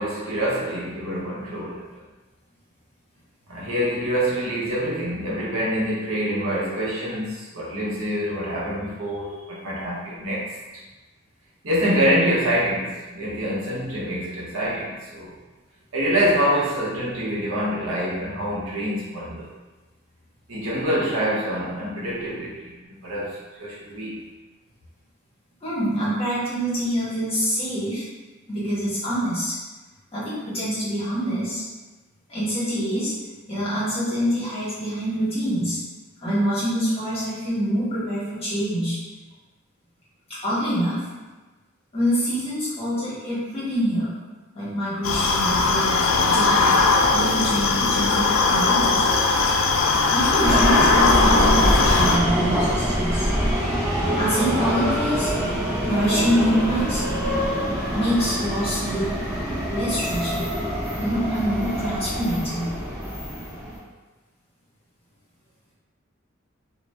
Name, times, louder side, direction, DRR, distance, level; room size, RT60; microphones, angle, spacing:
voice 1, 0.0-1.9 3.5-10.5 11.6-15.3 15.9-19.5 20.5-22.7 23.0-24.2, equal, 80° right, -6 dB, 0.8 m, -25 dB
voice 2, 25.6-28.0 28.5-29.5 30.1-31.6 32.3-33.1 33.5-35.8 36.2-39.0 40.3-41.1 41.9-44.1 44.5-49.1 50.1-53.3 54.1-55.3 55.8-57.0 57.9-59.1 59.7-60.4 61.0-62.7, equal, 30° left, -10 dB, 1.1 m, -25 dB
sound 1, 45.0-52.2, left 3 dB, 75° left, 0.3 m, -19 dB
sound 2, 50.4-63.8, equal, 10° right, 1.1 m, -25 dB
2.5 x 2.1 x 3.2 m, 1.2 s
head